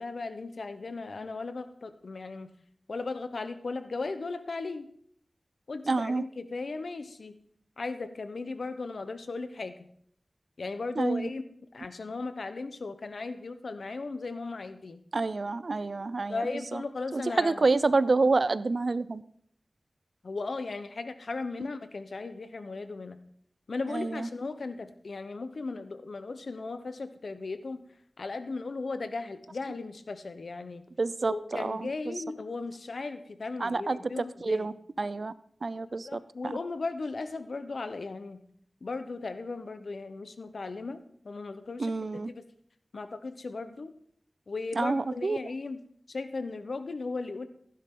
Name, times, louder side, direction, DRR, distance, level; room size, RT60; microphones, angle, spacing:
voice 1, 0.0-2.5 2.9-4.9 5.7-7.4 7.8-9.7 10.6-11.4 11.7-15.0 16.3-17.7 20.2-23.2 23.7-27.8 28.2-30.8 31.3-34.7 35.9-38.4 38.8-41.9 42.3-42.4 42.9-43.9 44.5-45.8 46.1-47.5, left 3 dB, 80° left, 10 dB, 0.9 m, -36 dB
voice 2, 5.9-6.2 11.0-11.3 15.1-16.5 16.7-16.8 17.1-19.2 23.9-24.3 31.0-32.1 33.6-35.3 35.6-36.6 41.8-42.3 44.8-45.4, right 3 dB, 65° right, 17 dB, 0.5 m, -28 dB
15.5 x 10.5 x 3.8 m, 0.63 s
wide cardioid pair, 65°, 0 cm